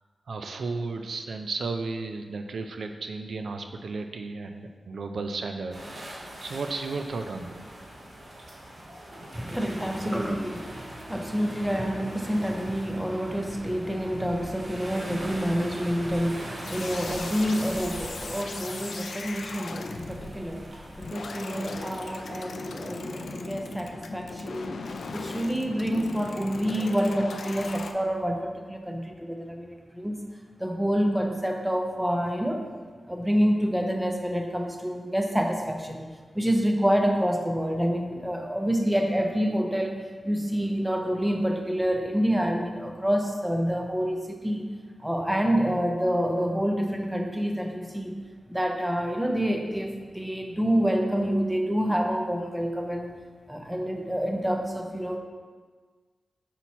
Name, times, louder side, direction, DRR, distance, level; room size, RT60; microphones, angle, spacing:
voice 1, 0.3-7.6, right 3 dB, 75° right, 6 dB, 0.4 m, -34 dB
sound 1, 5.7-22.4, right 1 dB, 50° right, 1.4 m, -42 dB
voice 2, 9.3-20.7 21.0-24.8 25.1-30.2 30.6-32.6 33.1-36.1 36.3-40.0 40.2-44.7 45.0-48.2 48.5-53.2 53.5-55.2, equal, 5° right, 3 dB, 0.5 m, -27 dB
sound 2, 16.6-27.9, left 3 dB, 75° left, 0.4 m, -38 dB
5.7 x 4.5 x 4.1 m, 1.5 s
wide cardioid pair, 175°, 0 cm